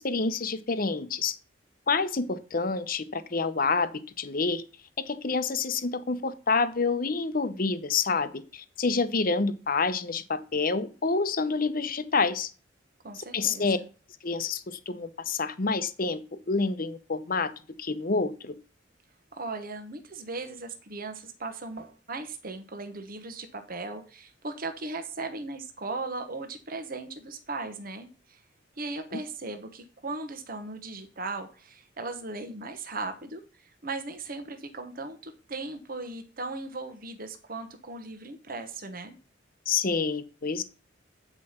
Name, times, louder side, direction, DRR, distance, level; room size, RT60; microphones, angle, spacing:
voice 1, 0.0-1.4 1.9-4.6 5.0-12.5 13.3-13.8 14.2-16.2 16.5-17.5 17.8-18.5 39.7-40.6, left 4 dB, 45° left, 12 dB, 0.8 m, -28 dB
voice 2, 13.0-13.8 19.3-28.4 28.8-39.1, right 3 dB, 45° right, 7 dB, 1.1 m, -38 dB
8.7 x 5.0 x 5.6 m, 0.35 s
head